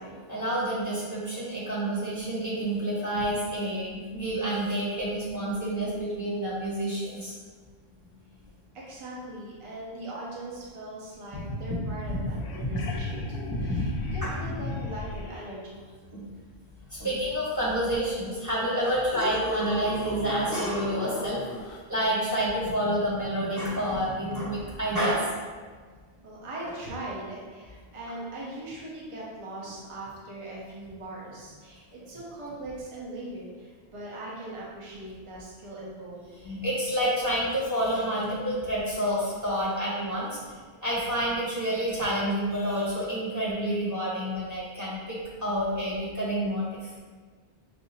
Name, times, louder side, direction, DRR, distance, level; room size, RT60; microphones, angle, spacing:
voice 1, 0.3-7.3 11.3-11.4 11.9-12.3 12.6-12.8 13.5-13.8 14.2-14.3 16.1-16.3 16.9-25.3 36.4-46.9, equal, 15° right, -7 dB, 1.2 m, -29 dB
voice 2, 8.7-15.9 26.2-36.4, right 1 dB, 35° right, -5 dB, 0.8 m, -40 dB
sound 1, 12.0-12.1 12.3-15.4 17.9-18.0 18.7-21.8 24.3-24.4, left 2 dB, 65° left, 0.7 m, -35 dB
5.9 x 2.7 x 2.7 m, 1.5 s
omnidirectional pair, 1.0 m